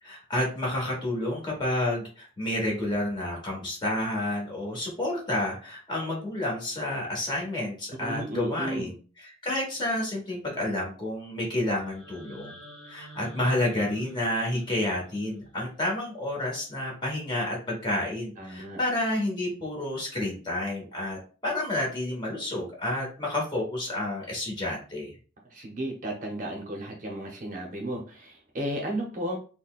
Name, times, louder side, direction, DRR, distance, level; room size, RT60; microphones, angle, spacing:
voice 1, 0.0-12.6 12.8-25.1, left 1 dB, 25° left, -2 dB, 1.1 m, -30 dB
voice 2, 8.0-8.9 18.4-18.8 25.5-29.4, right 1 dB, 40° right, 1 dB, 0.6 m, -34 dB
sound 1, 11.8-15.9, right 1 dB, ahead, 1.3 m, -49 dB
4.0 x 2.1 x 2.3 m, 0.38 s
head